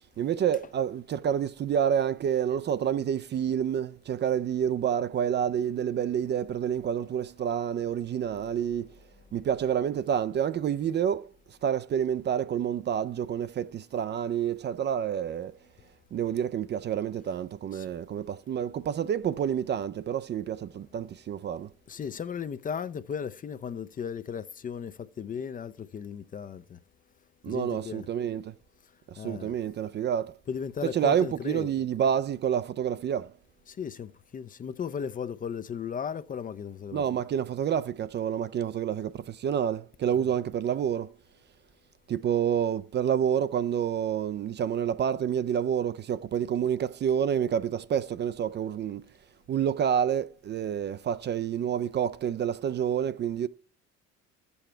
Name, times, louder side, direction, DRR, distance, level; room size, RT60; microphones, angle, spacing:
voice 1, 0.2-8.9 9.3-11.3 11.6-15.5 16.1-21.7 27.4-28.5 29.1-30.3 30.8-33.3 36.9-41.1 42.1-49.0 49.5-53.5, right 9 dB, 35° right, 0.4 m, -28 dB
voice 2, 21.9-26.8 27.5-28.1 29.2-29.5 30.5-31.7 33.7-37.0 40.2-40.3, left 7 dB, 30° left, 0.5 m, -36 dB
13.0 x 7.0 x 4.4 m
cardioid pair, 110°, 29 cm